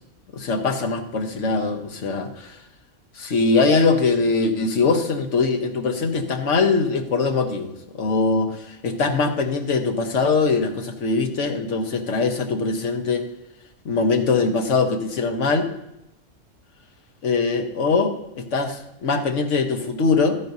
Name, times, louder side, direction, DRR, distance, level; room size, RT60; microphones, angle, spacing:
voice 1, 0.3-2.6 3.1-13.2 13.8-15.7 17.2-20.4, left 4 dB, 70° left, 5 dB, 1.4 m, -22 dB
12.5 x 9.6 x 2.7 m, 0.85 s
omnidirectional pair, 1.3 m